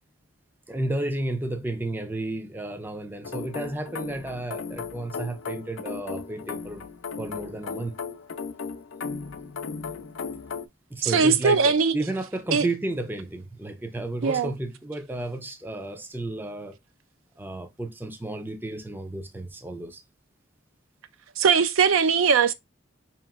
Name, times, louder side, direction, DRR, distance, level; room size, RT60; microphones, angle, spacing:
voice 1, 0.7-6.9 7.2-8.0 10.9-16.8 17.4-20.0, right 2 dB, 10° right, 0.4 m, -32 dB
sound 1, 3.2-10.7, left 5 dB, 65° left, 0.5 m, -36 dB
voice 2, 11.0-12.0 12.5-12.7 14.2-14.5 21.4-22.5, right 6 dB, 75° right, 0.5 m, -20 dB
5.1 x 2.9 x 2.4 m
head